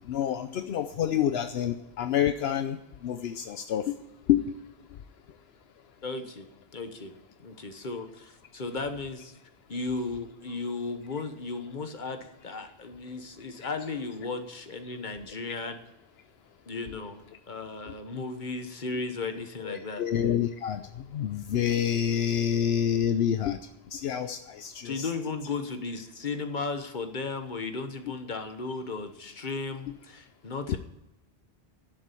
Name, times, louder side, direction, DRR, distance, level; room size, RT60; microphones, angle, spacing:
voice 1, 0.1-4.0 4.3-4.5 19.6-20.8 21.1-23.6 23.9-25.1 30.7-30.8, left 9 dB, 75° left, 9 dB, 0.9 m, -28 dB
voice 2, 6.0-6.5 6.7-7.1 7.4-9.3 9.7-15.8 16.7-20.0 24.8-30.8, left 3 dB, 50° left, 7 dB, 1.4 m, -35 dB
11.0 x 7.5 x 9.8 m, 0.92 s
omnidirectional pair, 1.1 m